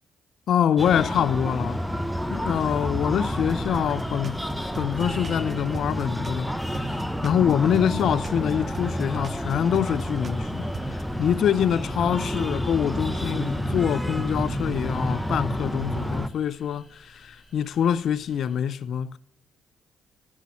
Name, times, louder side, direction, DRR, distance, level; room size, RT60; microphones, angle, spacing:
voice 1, 0.5-1.8 2.3-4.4 4.8-19.2, left 9 dB, 70° left, 0.4 m, -25 dB
Breathing, 0.8-16.3, equal, ahead, 0.7 m, -29 dB
sound 1, 3.5-6.4 6.7-10.4 10.7-11.0, right 4 dB, 40° right, 0.4 m, -39 dB
sound 2, 7.6-18.6, left 1 dB, 20° left, 4.2 m, -55 dB
9.4 x 6.2 x 5.4 m
supercardioid pair, 65°, 0 cm